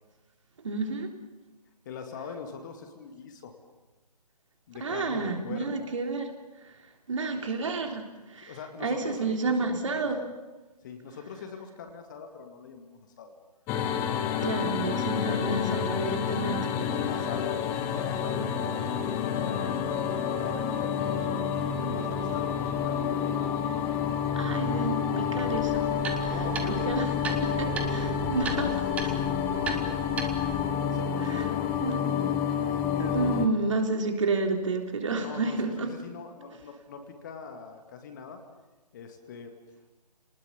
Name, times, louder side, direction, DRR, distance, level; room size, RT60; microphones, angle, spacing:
voice 1, 0.6-1.1 4.8-6.3 7.1-8.5 8.8-10.2 14.4-16.7 24.4-25.9 26.2-26.3 26.7-27.1 27.6-28.7 31.3-31.4 31.8-32.0 33.0-35.9, right 3 dB, 50° right, 3 dB, 3.5 m, -30 dB
voice 2, 1.9-3.5 4.7-5.9 8.4-10.3 10.8-13.3 16.3-18.7 19.3-21.2 21.7-23.1 26.3-27.4 27.9-28.7 30.2-32.0 35.2-38.4 38.9-39.5, left 5 dB, 30° left, 5 dB, 2.2 m, -42 dB
sound 1, 13.7-33.5, left 7 dB, 10° left, 0.8 m, -29 dB
sound 2, 25.4-30.7, right 4 dB, 5° right, 1.1 m, -37 dB
28.5 x 19.5 x 7.1 m, 1.2 s
figure-of-eight pair, 145°, 21 cm